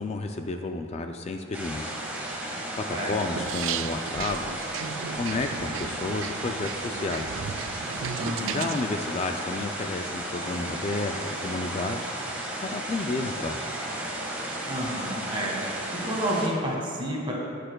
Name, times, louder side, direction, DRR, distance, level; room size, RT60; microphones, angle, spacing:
voice 1, 0.0-2.0 2.8-4.8 5.2-7.4 8.5-12.0 12.6-13.6, left 3 dB, 35° left, 5 dB, 0.3 m, -31 dB
sound 1, 1.5-16.5, right 1 dB, 10° right, 1.4 m, -34 dB
sound 2, 3.4-8.8, right 8 dB, 80° right, 0.3 m, -36 dB
voice 2, 8.2-8.7 14.7-15.6 16.0-17.3, equal, 25° right, -3 dB, 1.6 m, -30 dB
17.5 x 6.6 x 2.3 m, 2.6 s
head